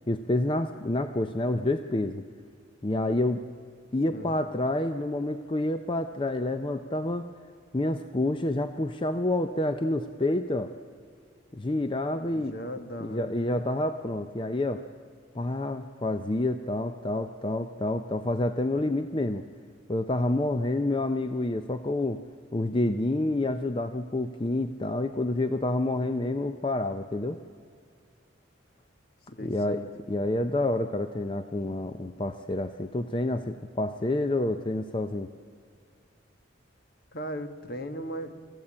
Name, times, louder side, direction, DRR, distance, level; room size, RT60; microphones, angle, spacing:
voice 1, 0.1-2.2 2.8-3.4 3.9-7.3 7.7-10.7 11.5-12.5 13.0-14.8 15.3-19.4 19.9-22.2 22.5-27.4 29.4-29.8 30.1-35.3, left 1 dB, 25° left, 8 dB, 0.6 m, -28 dB
voice 2, 12.2-13.6 29.3-29.9 37.1-38.4, equal, 50° left, 8 dB, 1.4 m, -38 dB
27.0 x 14.0 x 8.6 m, 2.2 s
head